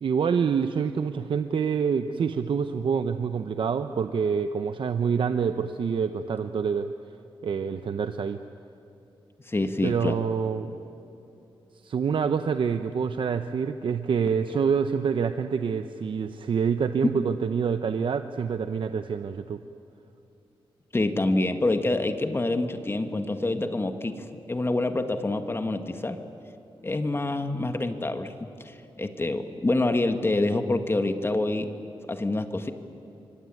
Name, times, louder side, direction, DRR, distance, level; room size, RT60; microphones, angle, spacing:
voice 1, 0.0-6.9 7.4-8.4 9.8-10.7 11.8-19.6, right 6 dB, 65° right, 9 dB, 0.8 m, -26 dB
voice 2, 9.4-10.1 20.9-26.2 26.8-28.4 28.6-31.7 32.1-32.7, left 2 dB, 25° left, 7 dB, 1.7 m, -26 dB
25.5 x 23.5 x 9.2 m, 2.8 s
cardioid pair, 85°, 9 cm